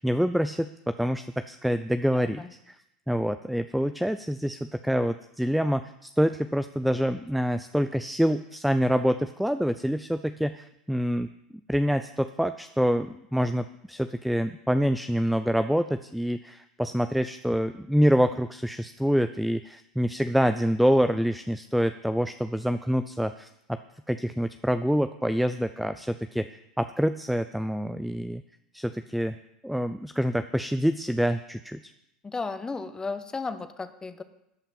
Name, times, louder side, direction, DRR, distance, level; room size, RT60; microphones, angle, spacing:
voice 1, 0.0-2.7 3.1-11.3 11.7-23.8 24.1-28.4 28.7-29.4 29.6-31.8, equal, ahead, 10 dB, 0.5 m, -26 dB
voice 2, 2.1-2.5 32.2-34.2, left 4 dB, 15° left, 10 dB, 1.2 m, -34 dB
13.5 x 5.7 x 9.0 m, 0.83 s
figure-of-eight pair, 80°, 4 cm